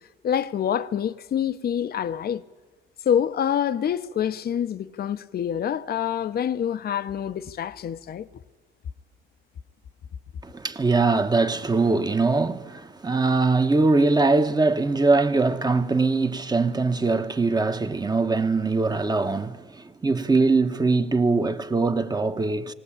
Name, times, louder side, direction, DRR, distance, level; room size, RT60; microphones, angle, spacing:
voice 1, 0.2-2.4 3.1-8.3, left 9 dB, 50° left, 0.7 m, -26 dB
voice 2, 10.4-22.7, right 3 dB, 20° right, 1.1 m, -22 dB
19.0 x 19.0 x 8.7 m
cardioid pair, 90°, 20 cm